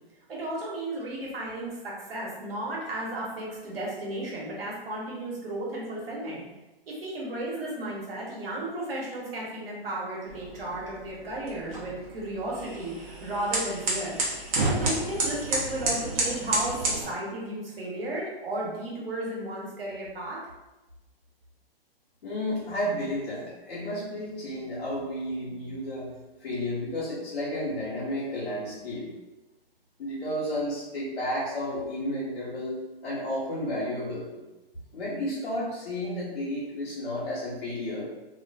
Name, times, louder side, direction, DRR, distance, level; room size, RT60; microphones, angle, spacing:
voice 1, 0.3-6.4 6.9-14.2 14.6-20.4, right 1 dB, 70° right, -4 dB, 1.0 m, -34 dB
sound 1, 10.3-17.0, right 2 dB, 35° right, 0.7 m, -31 dB
voice 2, 22.2-26.1 26.4-29.1 30.0-34.4 34.9-38.0, left 1 dB, 75° left, -9 dB, 1.1 m, -32 dB
2.4 x 2.3 x 2.3 m, 1.0 s
hypercardioid pair, 125°, 30 cm